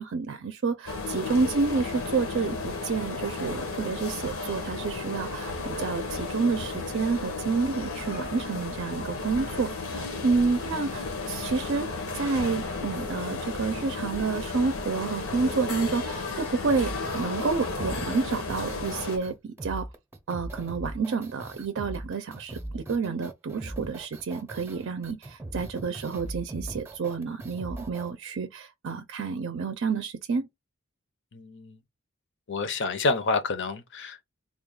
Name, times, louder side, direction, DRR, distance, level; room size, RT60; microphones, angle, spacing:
voice 1, 0.0-19.9 20.3-30.5, right 4 dB, 60° right, 0.5 m, -29 dB
sound 1, 0.9-19.2, left 3 dB, 80° left, 1.2 m, -33 dB
sound 2, 16.7-28.1, right 1 dB, 10° right, 0.6 m, -40 dB
voice 2, 31.3-31.8 32.5-34.2, left 3 dB, 60° left, 0.7 m, -28 dB
3.7 x 2.3 x 3.6 m
head